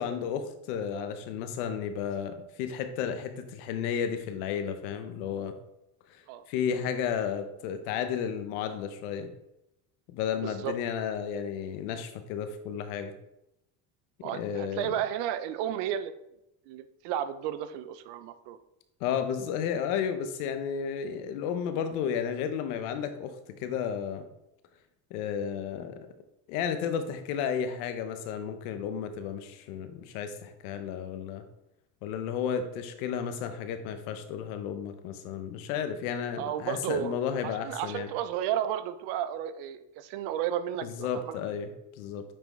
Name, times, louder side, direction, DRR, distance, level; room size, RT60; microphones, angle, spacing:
voice 1, 0.0-5.5 6.1-6.2 6.5-9.3 10.1-13.1 14.2-14.9 19.0-24.2 25.1-26.0 26.5-31.4 32.0-38.1 40.8-42.2, left 7 dB, 90° left, 8 dB, 0.8 m, -33 dB
voice 2, 10.4-10.7 14.2-16.1 16.7-18.6 36.4-37.2 37.6-41.3, right 10 dB, 75° right, 12 dB, 0.6 m, -33 dB
8.7 x 3.5 x 3.1 m, 0.86 s
supercardioid pair, 100°, 43 cm